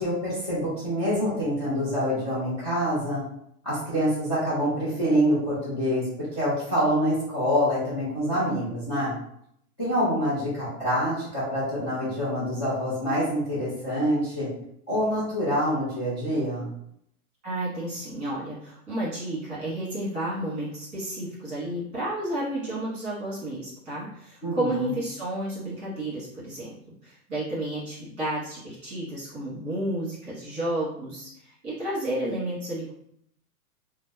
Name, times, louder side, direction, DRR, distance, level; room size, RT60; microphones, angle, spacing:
voice 1, 0.0-3.2 3.6-6.0 6.3-9.1 9.8-14.5 14.9-16.7 24.4-24.9, equal, 20° left, -13 dB, 0.5 m, -26 dB
voice 2, 17.4-26.7 27.0-32.9, right 1 dB, 15° right, -9 dB, 1.4 m, -31 dB
2.8 x 2.0 x 3.4 m, 0.72 s
hypercardioid pair, 175°, 46 cm